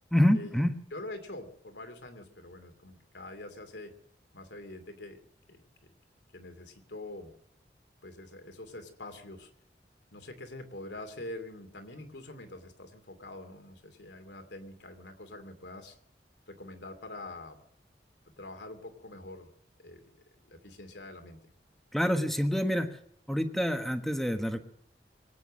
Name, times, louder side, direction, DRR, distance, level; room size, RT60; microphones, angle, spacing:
voice 1, 0.1-0.7 21.9-23.0 23.3-24.6, equal, ahead, 7 dB, 1.3 m, -27 dB
voice 2, 0.9-3.9 4.3-5.6 6.3-7.3 8.0-9.5 10.1-16.0 16.5-17.6 18.4-19.5 19.8-21.4, left 2 dB, 85° left, 6 dB, 2.7 m, -45 dB
24.0 x 9.4 x 6.3 m, 0.74 s
head